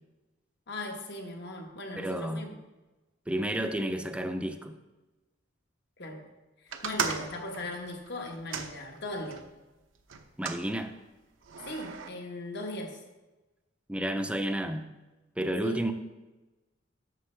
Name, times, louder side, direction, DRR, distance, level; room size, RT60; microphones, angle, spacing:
voice 1, 0.7-2.6 6.0-6.2 6.6-9.5 11.6-13.0 15.6-15.8, left 1 dB, 60° left, 2 dB, 1.2 m, -38 dB
voice 2, 2.0-2.5 3.3-4.8 10.4-10.9 13.9-14.9 15.4-15.9, right 1 dB, 5° right, 7 dB, 0.5 m, -31 dB
sound 1, 6.7-9.5 10.1-10.7 11.4-12.1, right 6 dB, 80° right, 0.7 m, -36 dB
11.5 x 6.7 x 3.3 m, 1.1 s
head